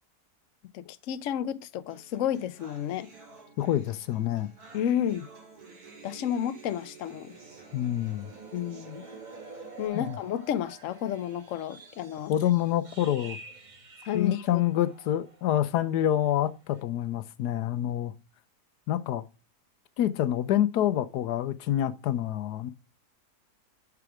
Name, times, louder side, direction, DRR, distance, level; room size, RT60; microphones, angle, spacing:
voice 1, 0.7-3.1 4.7-5.3 6.0-7.3 8.5-9.0 9.8-12.3 14.0-14.6, left 10 dB, 60° left, 0.9 m, -31 dB
sound 1, 1.9-9.9, right 4 dB, 70° right, 3.1 m, -52 dB
voice 2, 3.6-4.5 7.7-8.3 9.9-10.2 12.3-13.4 14.1-18.1 18.9-19.2 20.0-22.7, left 12 dB, 85° left, 1.3 m, -27 dB
sound 2, 7.1-15.7 16.0-16.3 16.7-16.8, right 3 dB, 30° right, 1.4 m, -48 dB
11.0 x 4.8 x 4.8 m
omnidirectional pair, 1.7 m